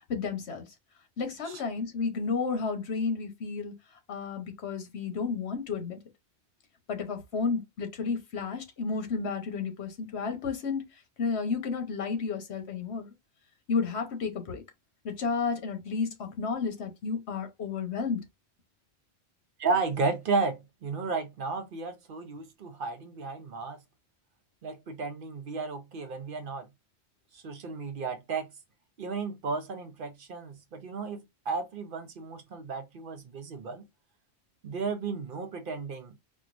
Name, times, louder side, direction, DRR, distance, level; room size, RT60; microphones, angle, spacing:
voice 1, 0.1-0.6 1.2-3.7 4.1-6.0 6.9-10.9 11.2-13.1 13.7-14.6 15.0-18.2, left 5 dB, 75° left, 1.2 m, -32 dB
voice 2, 19.6-23.8 24.6-26.7 27.3-28.5 29.0-33.8 34.6-36.1, right 4 dB, 60° right, 0.7 m, -33 dB
4.4 x 2.3 x 2.5 m
omnidirectional pair, 1.1 m